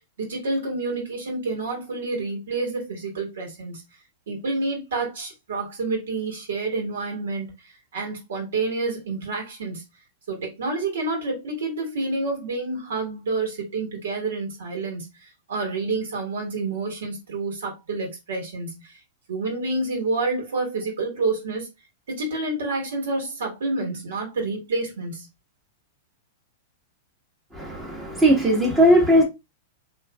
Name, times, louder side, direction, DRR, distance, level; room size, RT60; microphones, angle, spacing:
voice 1, 0.0-3.8 4.3-9.8 10.3-15.1 15.5-19.0 19.3-21.7 22.1-25.3, right 3 dB, 80° right, 1.5 m, -28 dB
voice 2, 27.5-29.2, equal, 15° right, 1.0 m, -18 dB
3.1 x 2.6 x 2.2 m
hypercardioid pair, 120°, 0 cm